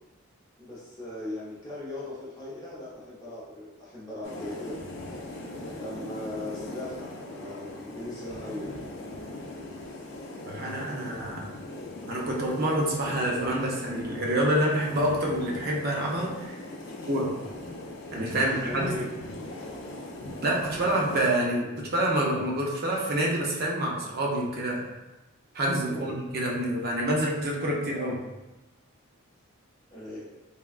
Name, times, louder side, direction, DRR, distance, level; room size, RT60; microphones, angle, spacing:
voice 1, 0.6-4.8 5.8-8.8 16.7-17.2 18.3-19.1 19.3-19.5 25.8-26.2 29.9-30.2, left 1 dB, 20° left, -7 dB, 0.6 m, -39 dB
sound 1, 4.2-21.2, left 1 dB, 55° left, 0.4 m, -40 dB
voice 2, 10.4-11.5 12.1-16.6 17.1-17.3 18.1-19.0 20.4-24.8 25.5-28.2, right 1 dB, 45° right, -2 dB, 0.6 m, -27 dB
3.4 x 2.2 x 2.3 m, 1.1 s
head